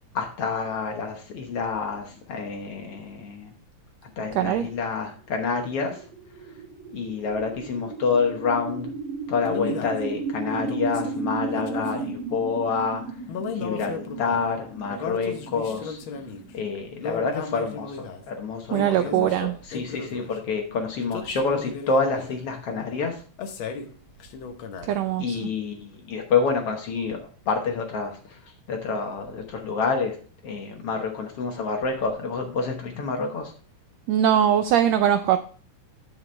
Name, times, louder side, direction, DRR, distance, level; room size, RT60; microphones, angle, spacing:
voice 1, 0.1-3.5 4.0-6.0 6.9-8.9 9.3-13.0 13.5-16.0 16.5-23.2 25.2-28.4 28.7-30.2 30.4-33.5, left 4 dB, 60° left, 3 dB, 1.8 m, -28 dB
voice 2, 4.3-4.7 18.7-19.5 24.9-25.4 34.1-35.4, right 10 dB, 80° right, 9 dB, 1.5 m, -21 dB
sound 1, 5.5-17.6, right 3 dB, 45° right, 1.9 m, -34 dB
sound 2, 9.4-10.0 10.5-12.1 13.3-14.5 14.9-16.5 17.0-18.2 18.7-19.4 19.7-20.4 21.0-22.4 23.4-23.9 24.2-24.9, left 5 dB, 85° left, 1.1 m, -35 dB
9.6 x 6.9 x 3.2 m, 0.42 s
omnidirectional pair, 3.6 m